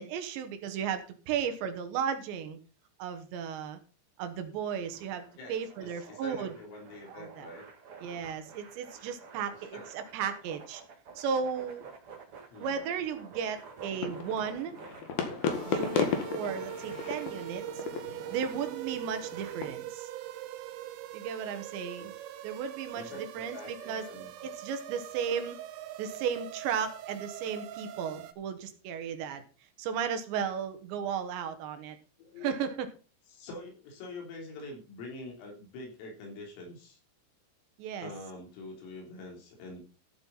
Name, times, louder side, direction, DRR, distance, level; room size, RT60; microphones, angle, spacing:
voice 1, 0.0-2.6 3.0-3.8 4.2-6.5 7.1-7.5 8.0-10.8 11.2-11.9 12.6-14.7 15.7-17.8 18.1-20.1 21.1-22.1 22.4-23.0 23.4-24.1 24.4-25.6 26.0-29.4 29.8-32.0 32.4-32.9 37.8-38.1, right 7 dB, 70° right, 8 dB, 3.3 m, -35 dB
sound 1, 4.8-19.5, right 5 dB, 45° right, 1.9 m, -51 dB
voice 2, 5.4-7.7 9.5-9.9 12.5-12.9 22.0-22.1 22.9-24.5 32.2-32.5 33.3-37.0 38.0-39.8, left 2 dB, 80° left, 1 dB, 6.1 m, -45 dB
sound 2, 13.9-19.6, left 6 dB, 60° left, 3.1 m, -35 dB
sound 3, 15.5-28.3, right 12 dB, 90° right, 3.5 m, -42 dB
14.5 x 7.9 x 4.1 m, 0.35 s
omnidirectional pair, 5.9 m